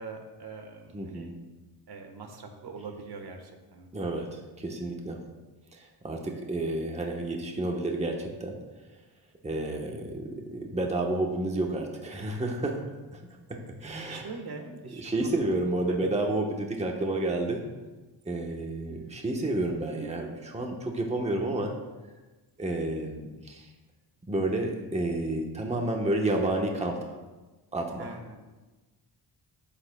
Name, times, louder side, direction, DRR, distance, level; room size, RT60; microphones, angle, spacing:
voice 1, 0.0-1.3 1.9-3.9 14.0-15.4 15.9-16.0 28.0-28.4, right 4 dB, 55° right, 4 dB, 1.3 m, -43 dB
voice 2, 0.9-1.3 3.9-5.2 5.7-8.5 9.4-12.8 13.8-14.3 14.9-17.7 18.3-21.7 22.6-23.7 24.3-27.2 27.7-28.2, right 2 dB, 15° right, 1 dB, 1.0 m, -30 dB
13.0 x 8.4 x 2.2 m, 1.2 s
cardioid pair, 120°, 45 cm